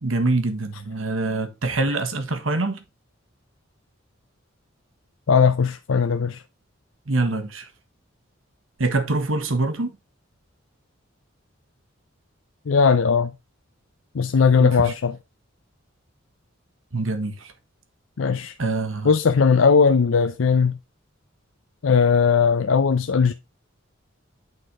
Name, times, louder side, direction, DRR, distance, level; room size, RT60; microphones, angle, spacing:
voice 1, 0.0-2.8 7.1-7.7 8.8-9.9 14.6-14.9 16.9-17.5 18.6-19.1, right 2 dB, 85° right, 1.4 m, -24 dB
voice 2, 5.3-6.4 12.7-13.3 14.1-15.1 18.2-18.5 19.0-20.8 21.8-23.3, left 5 dB, 85° left, 0.5 m, -18 dB
8.8 x 4.1 x 4.7 m
head